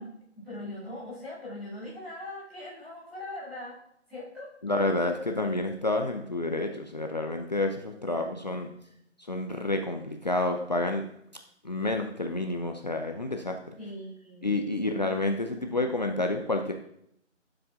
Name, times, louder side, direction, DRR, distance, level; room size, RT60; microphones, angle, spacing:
voice 1, 0.0-3.8 4.1-4.5 5.0-5.1 8.1-8.7 13.8-14.5 14.8-15.1 15.6-15.7, left 1 dB, ahead, -14 dB, 0.9 m, -41 dB
voice 2, 4.6-8.7 9.2-11.1 11.6-13.6 14.4-16.7, left 2 dB, 35° left, 4 dB, 0.6 m, -29 dB
14.0 x 7.6 x 2.4 m, 0.73 s
figure-of-eight pair, 155°, 37 cm